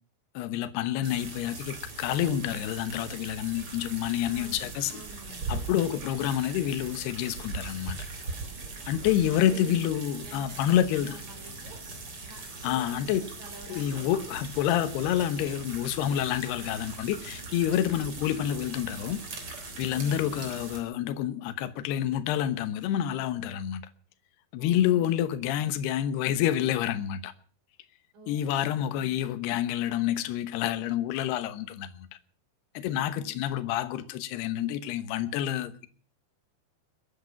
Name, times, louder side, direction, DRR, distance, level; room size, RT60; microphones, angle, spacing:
voice 1, 0.3-4.9 5.5-8.0 8.9-11.1 12.6-13.2 13.7-19.2 19.8-23.8 24.5-27.3 28.3-32.1 32.7-35.9, left 11 dB, 75° left, 3.1 m, -28 dB
sound 1, 1.0-20.8, right 3 dB, 35° right, 4.0 m, -40 dB
voice 2, 4.3-5.5 8.4-8.5 8.9-9.7 10.1-11.8 12.1-14.3 17.9-18.2 19.8-20.3 24.6-25.2 28.1-29.3 32.9-33.6, right 2 dB, 55° right, 5.7 m, -49 dB
22.5 x 11.0 x 5.9 m
omnidirectional pair, 5.0 m